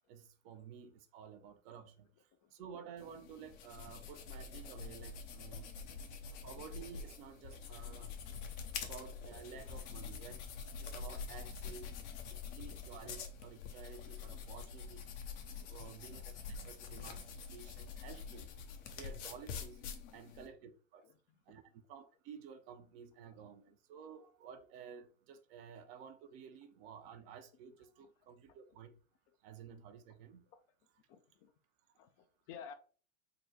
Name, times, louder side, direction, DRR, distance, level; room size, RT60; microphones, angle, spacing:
voice 1, 0.1-5.7 6.4-8.4 8.8-10.4 10.8-11.9 12.3-15.1 15.6-18.5 18.9-19.8 20.1-21.1 21.5-28.9 29.4-30.5, right 7 dB, 50° right, 0.7 m, -53 dB
sound 1, 3.0-20.5, left 6 dB, 60° left, 0.9 m, -46 dB
voice 2, 12.4-13.1 15.6-16.0 18.8-18.9 20.0-20.3 21.0-21.4 23.3-23.4 23.7-23.8 28.0-28.1 29.5-29.6 30.5-30.6 31.1-31.5 31.9-32.7, left 7 dB, 40° left, 0.5 m, -56 dB
3.9 x 2.2 x 4.4 m
hypercardioid pair, 95°, 39 cm